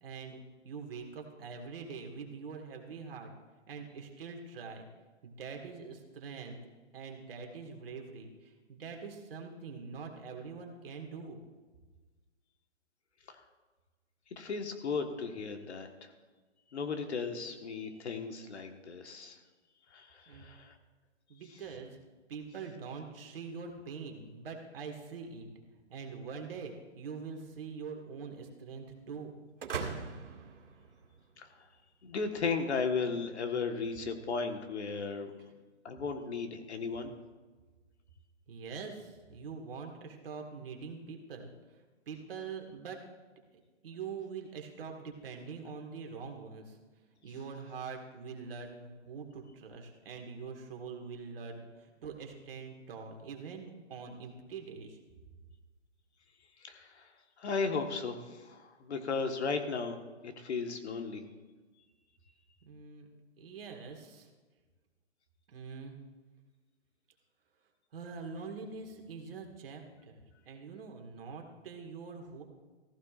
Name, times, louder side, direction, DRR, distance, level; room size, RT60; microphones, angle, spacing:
voice 1, 0.0-3.3 3.7-4.9 5.2-6.6 6.9-11.4 20.3-20.5 21.3-22.0 22.3-25.5 25.9-29.3 35.4-35.5 38.5-41.5 42.1-43.0 43.8-46.8 47.2-55.0 62.6-63.1 63.4-64.3 65.5-66.0 67.9-72.4, right 5 dB, 50° right, 3 dB, 1.9 m, -44 dB
voice 2, 14.4-15.9 16.7-19.4 19.9-20.7 31.4-31.5 32.0-35.3 35.8-37.1 56.6-57.1 57.4-60.0 60.2-61.2, left 5 dB, 65° left, 5 dB, 1.5 m, -35 dB
sound 1, 29.6-31.5, right 5 dB, 75° right, 2.3 m, -40 dB
15.5 x 14.5 x 2.5 m, 1.3 s
hypercardioid pair, 155°, 36 cm